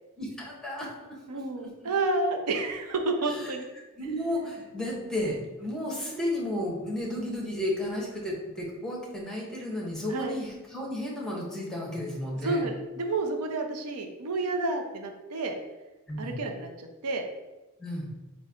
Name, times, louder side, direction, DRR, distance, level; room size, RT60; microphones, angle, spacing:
voice 1, 0.2-1.7 3.2-3.5 4.0-12.7 16.1-16.3 17.8-18.1, left 1 dB, 5° left, -3 dB, 1.0 m, -33 dB
voice 2, 1.3-3.7 10.1-10.4 12.4-15.6 16.2-17.3, right 2 dB, 90° right, 4 dB, 0.6 m, -30 dB
4.3 x 2.5 x 4.9 m, 1.1 s
head